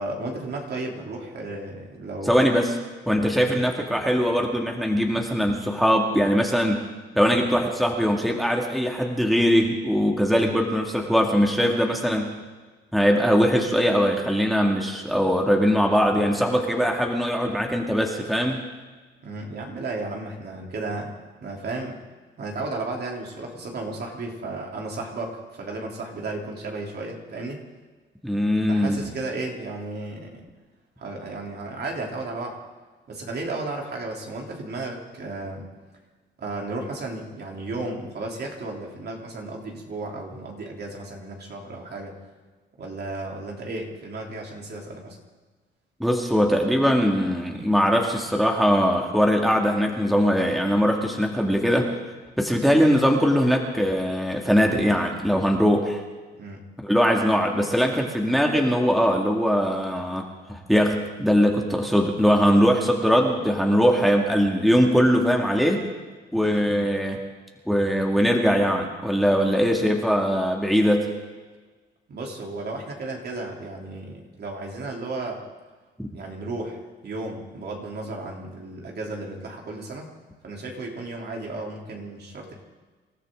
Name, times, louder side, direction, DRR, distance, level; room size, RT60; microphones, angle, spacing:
voice 1, 0.0-2.4 3.4-3.6 10.3-10.5 19.2-21.1 21.4-22.0 22.4-27.6 28.7-30.5 31.0-32.6 33.1-35.7 36.4-42.1 42.8-45.2 56.4-56.6 66.4-66.8 72.1-75.4 76.1-80.1 80.4-82.5, right 2 dB, 55° right, 0 dB, 3.5 m, -34 dB
voice 2, 2.3-2.7 3.1-6.8 7.1-12.3 12.9-18.6 28.2-29.0 46.0-51.9 52.4-56.0 56.8-65.8 66.3-67.2 67.7-71.1 76.0-76.1, equal, ahead, 1 dB, 2.2 m, -21 dB
27.0 x 13.5 x 3.9 m, 1.4 s
cardioid pair, 90°, 20 cm